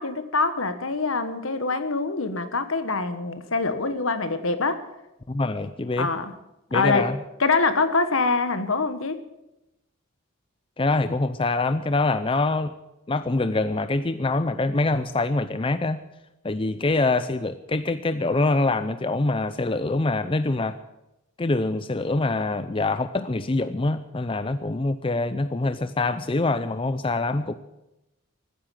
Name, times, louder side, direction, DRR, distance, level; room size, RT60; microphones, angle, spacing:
voice 1, 0.0-4.9 6.0-6.3 6.7-7.1 7.4-9.2, left 3 dB, 70° left, 10 dB, 1.5 m, -24 dB
voice 2, 5.3-6.1 6.7-7.2 10.8-12.7 13.1-16.0 16.4-20.7 21.4-27.5, left 2 dB, 25° left, 11 dB, 0.5 m, -24 dB
14.5 x 9.8 x 9.1 m, 0.91 s
head